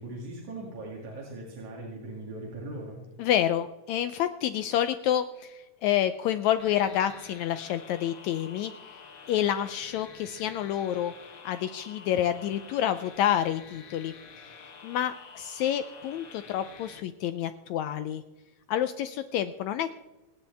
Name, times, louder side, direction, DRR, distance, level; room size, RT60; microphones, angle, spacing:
voice 1, 0.0-3.0, right 2 dB, 65° right, -2 dB, 3.7 m, -39 dB
voice 2, 3.2-8.7 9.3-11.1 11.5-18.2 18.7-19.9, left 11 dB, 80° left, 11 dB, 1.7 m, -28 dB
sound 1, 6.6-17.0, left 5 dB, 55° left, 1.5 m, -49 dB
26.5 x 9.9 x 3.4 m, 1.1 s
omnidirectional pair, 3.6 m